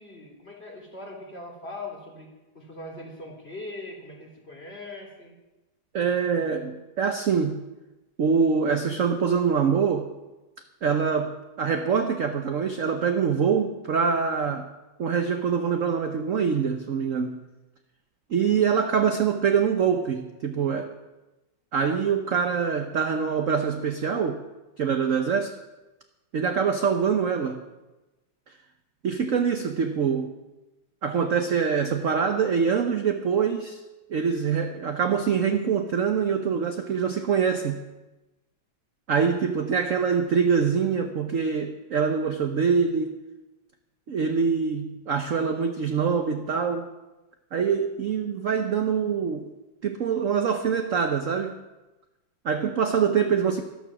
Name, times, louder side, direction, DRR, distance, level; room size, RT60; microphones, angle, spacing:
voice 1, 0.0-2.3 2.5-5.3, left 2 dB, 30° left, -1 dB, 3.5 m, -40 dB
voice 2, 5.9-7.6 8.2-10.1 10.8-14.7 15.0-17.4 18.3-20.9 21.7-24.4 24.8-25.6 26.3-27.6 29.0-30.3 31.0-33.8 34.1-37.8 39.1-43.2 44.1-46.9 47.5-49.5 49.8-51.6 52.4-53.6, right 6 dB, 55° right, 5 dB, 1.0 m, -24 dB
13.5 x 13.0 x 6.0 m, 1.1 s
omnidirectional pair, 2.2 m